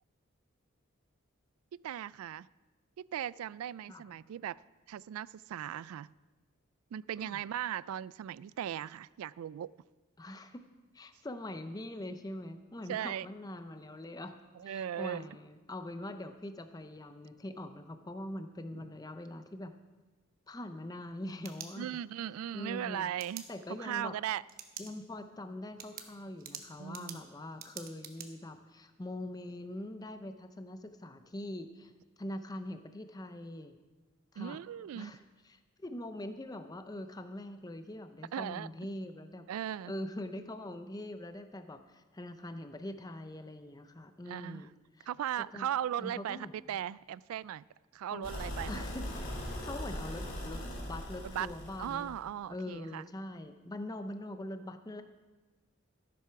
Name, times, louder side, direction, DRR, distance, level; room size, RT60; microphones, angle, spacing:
voice 1, 1.7-2.5 3.0-4.6 4.9-6.1 6.9-9.7 12.9-13.3 14.6-15.3 18.7-18.8 21.8-23.4 23.8-24.4 26.8-27.2 34.4-35.1 38.3-38.7 39.5-39.9 44.3-44.6 45.1-47.6 47.9-48.9 51.2-51.5 51.8-53.0, right 10 dB, 90° right, 18 dB, 0.3 m, -38 dB
voice 2, 3.9-4.2 7.2-7.4 10.2-10.7 10.9-14.4 14.6-19.7 20.5-22.0 22.5-23.1 23.5-24.2 24.8-31.9 32.2-33.7 34.3-34.6 34.9-39.5 39.9-44.7 45.0-45.1 45.5-45.7 46.0-46.6 48.1-48.3 48.7-49.3 49.6-52.2 52.5-55.0, left 1 dB, 20° left, 9 dB, 0.5 m, -43 dB
sound 1, 21.0-22.2 23.2-23.4 24.5-24.9 25.3-25.4 25.8-28.3, right 8 dB, 45° right, 1.0 m, -46 dB
sound 2, 48.2-52.2, equal, 40° left, 2.7 m, -40 dB
14.0 x 7.7 x 5.7 m, 1.2 s
head